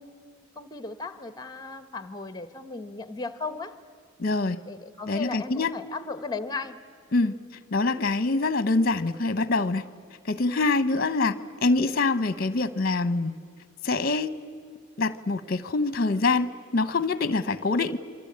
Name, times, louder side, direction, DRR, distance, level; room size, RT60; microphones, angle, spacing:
voice 1, 0.0-3.8 4.7-6.8, left 4 dB, 20° left, 12 dB, 1.0 m, -36 dB
voice 2, 4.2-4.6 5.1-5.8 7.1-7.3 7.7-9.8 10.2-11.3 11.6-13.4 13.8-14.4 15.0-18.0, left 3 dB, 45° left, 14 dB, 0.9 m, -25 dB
28.5 x 24.0 x 8.6 m, 2.2 s
head